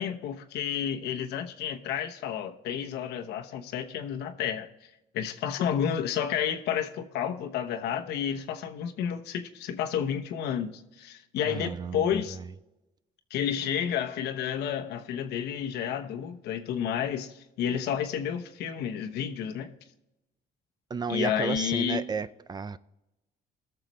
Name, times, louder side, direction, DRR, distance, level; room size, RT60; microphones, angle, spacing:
voice 1, 0.0-4.7 5.1-12.4 13.3-19.7 21.1-22.0, left 8 dB, 80° left, 1.1 m, -31 dB
voice 2, 11.4-12.5 20.9-22.8, right 5 dB, 25° right, 0.4 m, -33 dB
19.5 x 6.8 x 3.2 m
cardioid pair, 110°, 17 cm